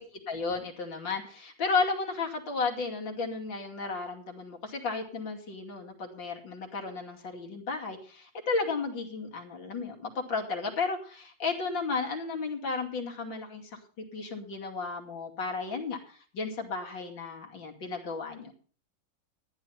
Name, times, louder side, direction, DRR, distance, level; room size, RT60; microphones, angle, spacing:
voice 1, 0.3-18.5, left 4 dB, 65° left, 1 dB, 3.2 m, -33 dB
14.0 x 10.5 x 5.6 m, 0.41 s
omnidirectional pair, 2.2 m